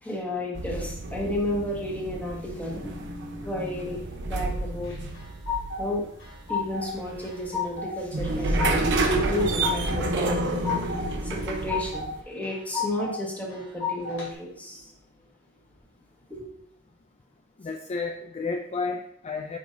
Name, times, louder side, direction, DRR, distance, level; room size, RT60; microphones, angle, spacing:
voice 1, 0.0-3.1 3.4-4.9 5.8-6.1 6.5-14.8 16.3-16.5, left 1 dB, 10° left, -3 dB, 1.6 m, -32 dB
sound 1, 0.5-12.2, right 2 dB, 60° right, 0.9 m, -30 dB
sound 2, 4.8-5.8 6.2-6.9 7.2-7.9 8.3-9.0 9.3-10.0 10.4-11.0 11.4-12.1 12.4-13.1 13.5-14.3, left 6 dB, 65° left, 2.6 m, -32 dB
voice 2, 17.6-19.6, left 4 dB, 30° left, 5 dB, 0.4 m, -31 dB
9.4 x 4.8 x 2.7 m, 0.71 s
head